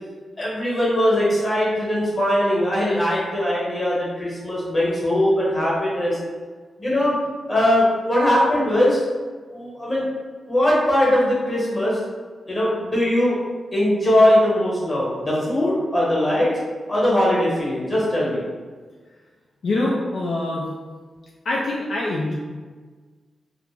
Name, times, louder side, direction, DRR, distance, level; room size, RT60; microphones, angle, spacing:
voice 1, 0.4-6.2 6.8-7.2 7.5-9.0 9.5-10.0 10.5-12.0 12.5-13.3 13.7-16.5 16.9-18.4, left 1 dB, 25° left, -6 dB, 1.0 m, -20 dB
voice 2, 19.6-20.6 21.5-22.3, left 2 dB, 60° left, -4 dB, 0.3 m, -24 dB
2.4 x 2.1 x 3.1 m, 1.4 s
wide cardioid pair, 125°, 0 cm